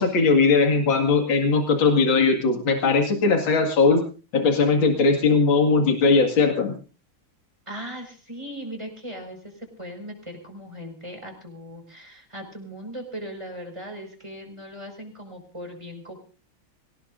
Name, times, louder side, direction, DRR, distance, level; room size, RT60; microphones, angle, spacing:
voice 1, 0.0-4.0 4.3-6.7, left 4 dB, 70° left, 3 dB, 2.8 m, -19 dB
voice 2, 7.7-16.2, equal, 15° right, 3 dB, 5.5 m, -38 dB
25.0 x 18.5 x 2.6 m, 0.37 s
omnidirectional pair, 2.2 m